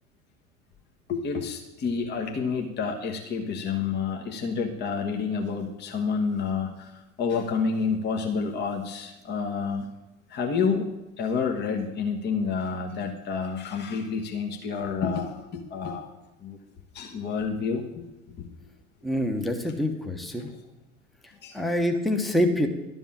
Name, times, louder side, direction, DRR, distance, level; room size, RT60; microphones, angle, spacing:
voice 1, 1.1-9.9 10.3-10.9 11.2-16.1 16.4-16.6 16.9-18.0 18.4-18.5 21.4-21.6, left 5 dB, 25° left, 2 dB, 1.2 m, -29 dB
voice 2, 19.0-20.5 21.5-22.7, left 1 dB, ahead, 4 dB, 1.1 m, -25 dB
12.0 x 5.4 x 7.4 m, 1.0 s
figure-of-eight pair, 80°, 41 cm